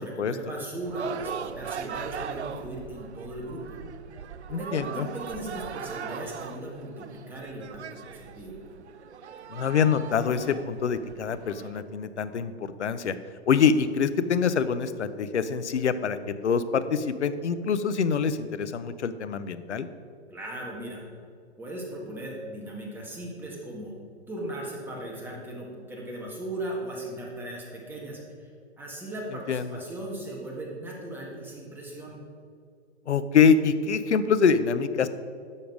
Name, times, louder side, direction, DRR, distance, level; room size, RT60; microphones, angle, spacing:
voice 1, 0.0-3.8 4.5-8.6 20.3-21.0 21.6-23.9 24.3-28.5 28.8-32.2, right 1 dB, 5° right, -3 dB, 1.8 m, -37 dB
sound 1, 0.8-11.8, right 7 dB, 75° right, 0.6 m, -39 dB
voice 2, 4.5-5.1 9.5-13.1 13.5-19.9 29.5-29.7 33.1-35.1, left 6 dB, 75° left, 12 dB, 0.7 m, -25 dB
11.0 x 6.7 x 5.0 m, 2.3 s
hypercardioid pair, 125°, 34 cm